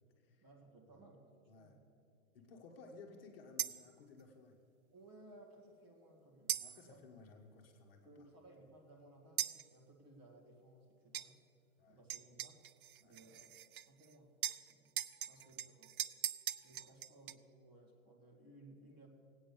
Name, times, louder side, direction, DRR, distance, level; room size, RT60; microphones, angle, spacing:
voice 1, 0.4-1.8 4.9-7.0 8.0-11.4 11.9-12.6 13.0-14.9 15.3-15.9 16.6-19.1, right 2 dB, 25° right, -2 dB, 2.1 m, -61 dB
voice 2, 1.5-1.8 2.3-4.6 6.6-8.3 11.8-12.0 13.0-13.3 15.2-15.5 16.7-16.9 18.9-19.0, left 4 dB, 40° left, 2 dB, 1.6 m, -58 dB
sound 1, 3.6-3.9 6.5-6.9 9.4-9.7 11.1-11.3 12.1-14.1 14.4-17.3, right 11 dB, 75° right, 0.7 m, -41 dB
18.0 x 9.0 x 6.9 m, 2.6 s
hypercardioid pair, 175°, 43 cm